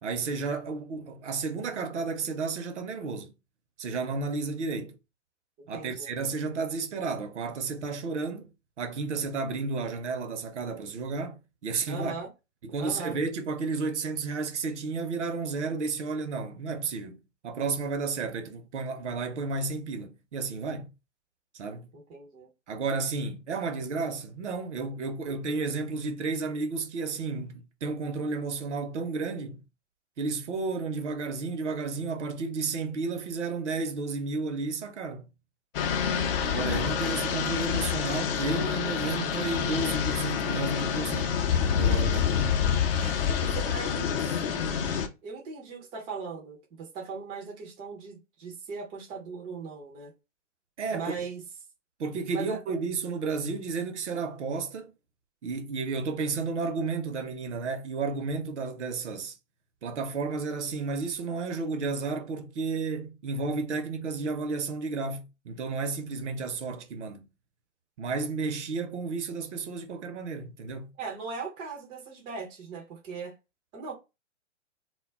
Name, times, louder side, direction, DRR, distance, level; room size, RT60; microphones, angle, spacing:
voice 1, 0.0-3.3 3.8-5.0 5.7-8.5 8.8-12.1 12.6-20.9 21.5-21.9 22.7-29.6 30.2-35.3 36.4-41.3 41.8-42.4 43.0-43.3 50.8-51.1 52.0-54.9 55.4-59.4 59.8-67.3 68.0-70.9, right 4 dB, 70° right, 0.7 m, -32 dB
voice 2, 5.6-6.1 11.9-12.3 12.8-13.2 21.9-22.5 43.2-44.9 45.2-50.1 50.9-51.4 52.3-52.6 71.0-73.3 73.7-73.9, right 4 dB, 15° right, 0.4 m, -39 dB
sound 1, 35.7-45.1, left 7 dB, 50° left, 0.5 m, -27 dB
2.2 x 2.0 x 3.4 m
hypercardioid pair, 120°, 37 cm